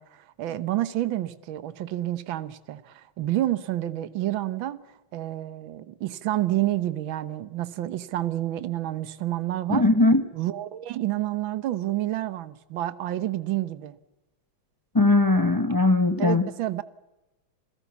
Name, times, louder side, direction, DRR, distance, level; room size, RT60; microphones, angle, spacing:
voice 1, 0.0-4.8 5.1-9.9 10.3-14.0 16.2-16.8, right 14 dB, 75° right, 1.8 m, -29 dB
voice 2, 9.7-10.2 14.9-16.4, left 2 dB, 20° left, 0.6 m, -19 dB
27.5 x 17.5 x 8.3 m
omnidirectional pair, 2.2 m